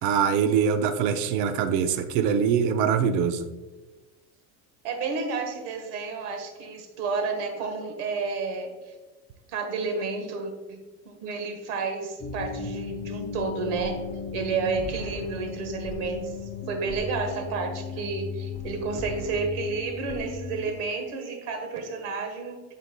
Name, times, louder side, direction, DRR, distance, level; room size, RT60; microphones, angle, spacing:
voice 1, 0.0-3.5, right 7 dB, 60° right, 8 dB, 0.7 m, -23 dB
voice 2, 4.8-8.9 9.5-14.0 14.3-16.3 16.7-22.6, right 4 dB, 90° right, 4 dB, 1.4 m, -31 dB
sound 1, 12.2-20.7, left 4 dB, 20° left, 0.5 m, -36 dB
11.0 x 4.4 x 2.2 m, 1.2 s
cardioid pair, 155°, 34 cm